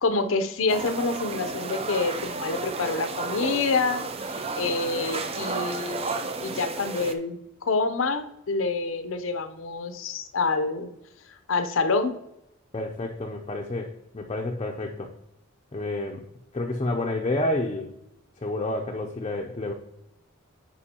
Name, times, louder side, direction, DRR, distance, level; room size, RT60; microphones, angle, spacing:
voice 1, 0.0-10.9 11.5-12.1, left 3 dB, 75° left, 9 dB, 0.6 m, -27 dB
sound 1, 0.7-7.1, right 3 dB, 30° right, 0.4 m, -32 dB
voice 2, 12.7-15.1 15.7-16.2 16.5-17.9 18.4-19.7, left 2 dB, 30° left, 0 dB, 0.5 m, -29 dB
9.7 x 4.6 x 2.9 m, 0.85 s
head